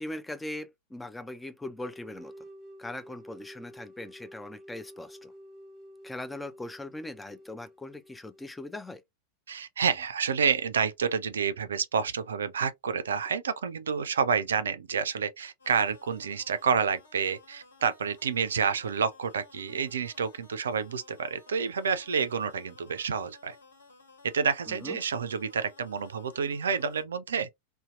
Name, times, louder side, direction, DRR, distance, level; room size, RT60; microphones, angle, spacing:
voice 1, 0.0-2.3 2.8-5.3 6.0-9.0 24.7-25.0, left 1 dB, 5° left, 0.3 m, -40 dB
sound 1, 1.8-8.6, equal, 25° right, 1.0 m, -50 dB
voice 2, 9.5-23.6 24.3-27.5, right 6 dB, 65° right, 0.4 m, -29 dB
sound 2, 15.6-27.0, left 3 dB, 70° left, 1.2 m, -56 dB
2.6 x 2.2 x 2.3 m
figure-of-eight pair, 90°, 0 cm